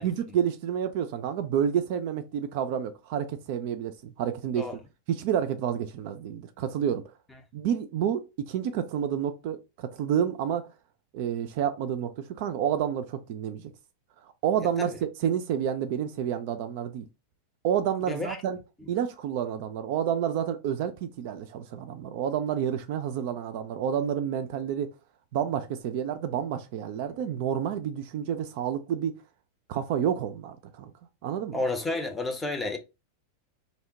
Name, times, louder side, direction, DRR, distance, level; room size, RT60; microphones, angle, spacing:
voice 1, 0.0-4.7 5.1-7.1 7.5-10.7 11.1-13.7 14.4-14.9 15.2-17.1 17.6-18.6 18.9-24.9 25.3-29.2 29.7-30.9 31.2-31.6, right 9 dB, 50° right, 0.3 m, -29 dB
voice 2, 18.0-18.4 18.8-18.9 31.5-32.8, left 2 dB, 10° left, 0.6 m, -31 dB
2.8 x 2.1 x 2.7 m
figure-of-eight pair, 90°, 0 cm